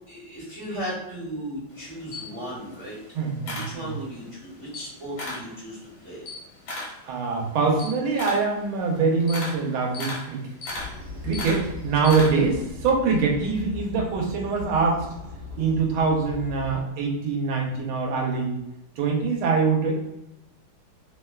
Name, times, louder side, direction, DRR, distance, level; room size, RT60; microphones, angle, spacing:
voice 1, 0.1-3.0 3.5-6.2, equal, 20° right, -8 dB, 1.0 m, -36 dB
Camera, 1.7-4.3 4.6-5.5 5.9-12.6, left 2 dB, 70° left, 1.5 m, -36 dB
voice 2, 3.1-3.9 7.1-10.4 11.2-15.1 15.6-18.6 19.0-20.0, right 4 dB, 85° right, 0 dB, 1.5 m, -24 dB
sound 1, 10.7-16.8, left 4 dB, 70° right, 1.3 m, -39 dB
3.6 x 2.2 x 2.2 m, 0.89 s
omnidirectional pair, 2.3 m